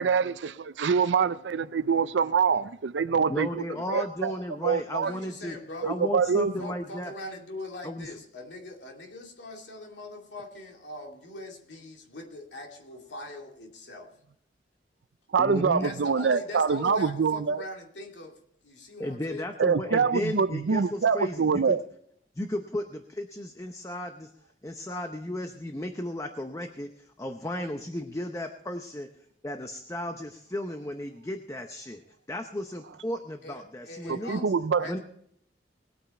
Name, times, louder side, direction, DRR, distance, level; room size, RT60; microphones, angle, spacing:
voice 1, 0.0-4.3 4.6-5.1 5.8-6.5 15.3-17.6 19.6-21.8 34.1-34.9, right 5 dB, 90° right, 0.5 m, -25 dB
voice 2, 3.3-5.6 5.8-7.1 7.8-8.1 15.4-15.9 19.0-21.8 22.4-24.3 24.6-29.1 29.4-32.0 32.3-34.5 34.8-35.0, left 1 dB, 15° left, 0.7 m, -34 dB
voice 3, 5.0-6.0 6.6-14.1 15.8-19.5 33.4-34.5 34.8-35.0, left 2 dB, 80° left, 2.6 m, -41 dB
19.5 x 9.0 x 4.3 m
head